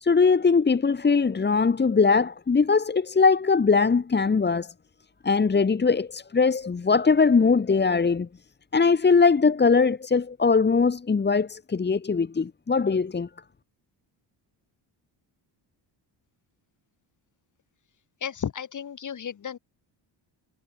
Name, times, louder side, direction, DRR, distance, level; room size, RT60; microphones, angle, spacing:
voice 1, 0.0-4.7 5.2-8.3 8.7-13.3, left 5 dB, 25° left, 2.9 m, -21 dB
voice 2, 18.2-19.6, left 8 dB, 40° left, 7.7 m, -33 dB
cardioid pair, 150°, 44 cm